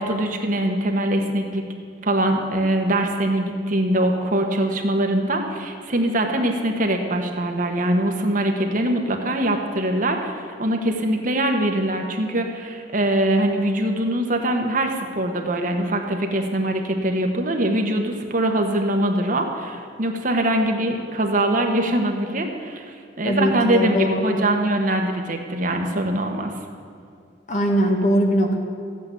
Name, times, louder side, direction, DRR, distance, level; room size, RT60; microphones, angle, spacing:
voice 1, 0.0-1.7 2.0-26.5, right 1 dB, 50° right, 3 dB, 1.4 m, -23 dB
voice 2, 23.2-24.4 27.5-28.6, equal, 45° left, 2 dB, 1.8 m, -20 dB
13.5 x 8.7 x 8.4 m, 2.3 s
head